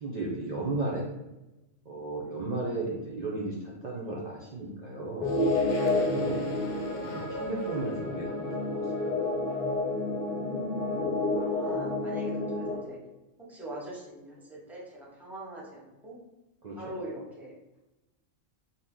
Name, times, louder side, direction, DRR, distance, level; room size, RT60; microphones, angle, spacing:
voice 1, 0.0-1.1 1.9-5.3 6.0-6.4 6.9-8.8 16.6-16.8, right 2 dB, 70° right, -4 dB, 0.4 m, -34 dB
sound 1, 5.2-12.7, left 2 dB, 60° left, 0.7 m, -30 dB
voice 2, 6.2-6.7 10.3-11.1 11.4-13.0 13.4-16.2 16.7-17.8, right 1 dB, ahead, -5 dB, 0.6 m, -42 dB
2.7 x 2.1 x 3.5 m, 0.99 s
omnidirectional pair, 1.3 m